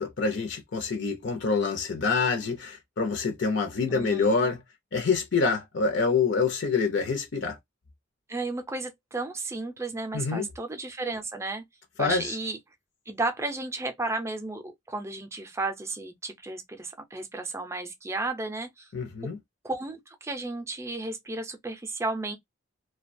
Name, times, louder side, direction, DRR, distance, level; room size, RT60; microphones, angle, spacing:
voice 1, 0.0-4.6 4.9-7.6 10.1-10.5 12.0-12.4 18.9-19.4, left 4 dB, 65° left, 0.6 m, -26 dB
voice 2, 3.9-4.5 8.3-11.6 12.0-12.6 13.1-18.9 19.2-19.3 19.6-22.4, right 2 dB, 15° right, 0.5 m, -33 dB
2.3 x 2.2 x 2.5 m
head